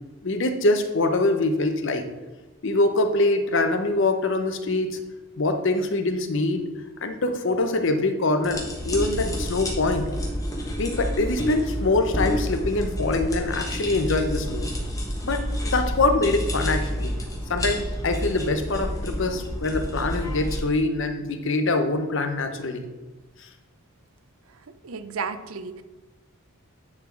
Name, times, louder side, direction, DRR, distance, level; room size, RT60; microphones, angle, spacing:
voice 1, 0.2-2.1 2.6-5.0 5.4-6.7 7.0-10.1 10.8-14.7 15.2-17.1 17.5-22.8 23.4-23.5, left 2 dB, 55° left, 7 dB, 0.7 m, -24 dB
sound 1, 8.4-20.6, equal, 15° left, 1.3 m, -29 dB
voice 2, 24.8-25.8, right 5 dB, 75° right, 10 dB, 0.6 m, -33 dB
9.7 x 4.3 x 4.5 m, 1.2 s
head